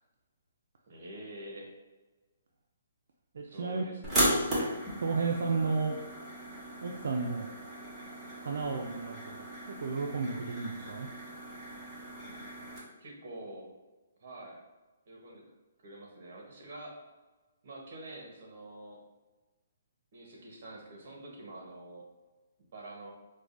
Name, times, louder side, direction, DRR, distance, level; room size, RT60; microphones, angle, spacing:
voice 1, 0.9-1.7 3.4-4.5 13.0-13.7 14.2-14.6 15.1-15.4 15.8-17.0 17.6-19.0 20.1-22.0 22.7-23.1, right 1 dB, 50° right, -1 dB, 1.0 m, -46 dB
voice 2, 3.3-3.8 5.0-6.0 6.8-7.5 8.4-9.5 9.8-11.1, right 4 dB, 70° right, 0 dB, 0.3 m, -32 dB
sound 1, 4.0-12.8, right 1 dB, 10° right, 0.8 m, -36 dB
4.6 x 2.2 x 2.5 m, 1.2 s
hypercardioid pair, 165°, 0 cm